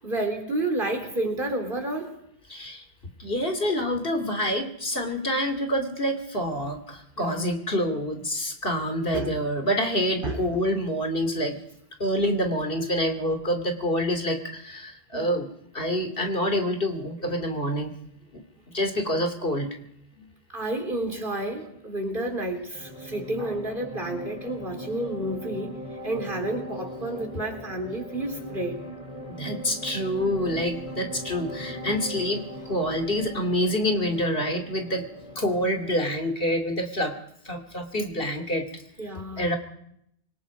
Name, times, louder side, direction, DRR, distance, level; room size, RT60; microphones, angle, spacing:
voice 1, 0.0-2.1 7.2-7.5 9.1-9.4 10.2-10.4 15.1-15.3 20.5-28.8 39.0-39.5, right 1 dB, 50° right, 5 dB, 3.9 m, -30 dB
voice 2, 2.5-2.8 3.2-11.6 12.0-15.5 15.7-17.9 18.3-18.4 18.7-19.7 20.2-20.3 29.3-35.1 35.4-37.2 37.4-38.7 39.4-39.6, equal, 55° left, 5 dB, 2.8 m, -27 dB
sound 1, 22.7-36.1, equal, 30° left, 3.2 m, -39 dB
26.5 x 24.0 x 5.0 m, 0.73 s
omnidirectional pair, 1.1 m